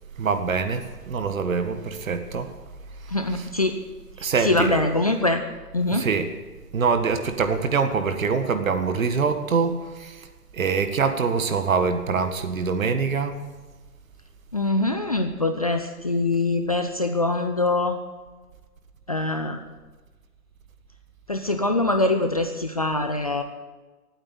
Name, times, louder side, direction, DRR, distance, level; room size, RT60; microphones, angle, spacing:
voice 1, 0.2-2.5 3.0-3.5 4.2-4.8 5.9-6.3 6.7-10.3 10.5-13.4, right 5 dB, 55° right, 8 dB, 1.8 m, -24 dB
voice 2, 3.1-3.7 4.4-5.4 5.7-6.0 14.5-18.0 19.1-19.6 21.3-23.4, left 2 dB, 25° left, 6 dB, 0.5 m, -23 dB
16.5 x 9.1 x 8.3 m, 1.3 s
figure-of-eight pair, 145°, 47 cm